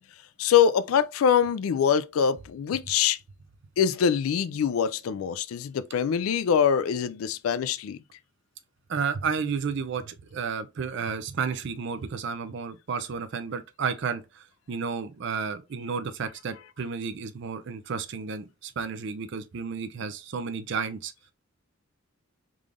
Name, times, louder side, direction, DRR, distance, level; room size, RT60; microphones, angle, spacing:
voice 1, 0.4-3.2 3.8-8.0, left 8 dB, 85° left, 0.3 m, -24 dB
voice 2, 8.9-21.1, right 5 dB, 60° right, 0.4 m, -32 dB
3.7 x 3.3 x 2.5 m
head